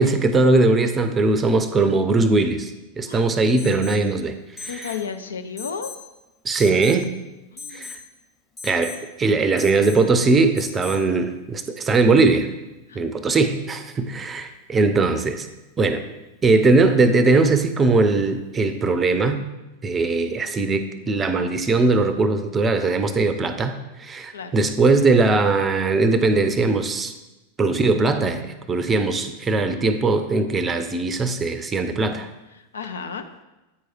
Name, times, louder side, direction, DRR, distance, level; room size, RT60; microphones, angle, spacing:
voice 1, 0.0-2.7 3.0-4.9 6.4-7.1 7.7-8.0 8.6-12.5 12.9-15.5 15.8-16.0 16.4-19.4 19.8-27.1 27.6-32.3, right 3 dB, 20° right, 10 dB, 0.6 m, -20 dB
voice 2, 3.0-3.5 4.7-5.9 7.5-7.9 12.9-13.0 24.3-24.6 32.5-33.2, left 6 dB, 70° left, 8 dB, 0.5 m, -33 dB
Alarm, 3.6-4.1 4.6-5.0 5.6-6.1 6.6-7.0 7.6-8.0 8.6-9.0 9.6-10.0 10.6-11.0, left 5 dB, 15° left, 1.3 m, -38 dB
8.8 x 4.7 x 4.4 m, 1.0 s
figure-of-eight pair, 90°, 0 cm